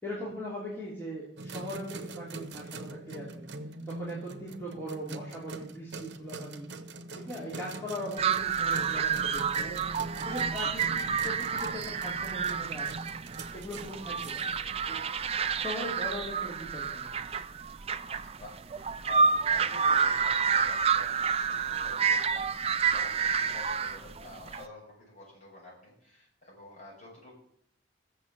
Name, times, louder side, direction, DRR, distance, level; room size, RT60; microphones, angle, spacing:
voice 1, 0.0-3.4 3.8-6.7 7.1-9.8 10.2-13.0 13.5-14.4 14.9-15.0 15.6-17.1, equal, 10° left, -7 dB, 3.1 m, -40 dB
sound 1, 1.4-15.2, right 2 dB, 65° right, 1.1 m, -43 dB
sound 2, 8.2-24.6, right 6 dB, 30° right, 0.5 m, -29 dB
voice 2, 10.2-10.5 13.8-13.9 18.1-22.5 22.9-27.4, left 1 dB, 40° left, -4 dB, 7.0 m, -49 dB
15.5 x 7.3 x 7.4 m, 0.68 s
head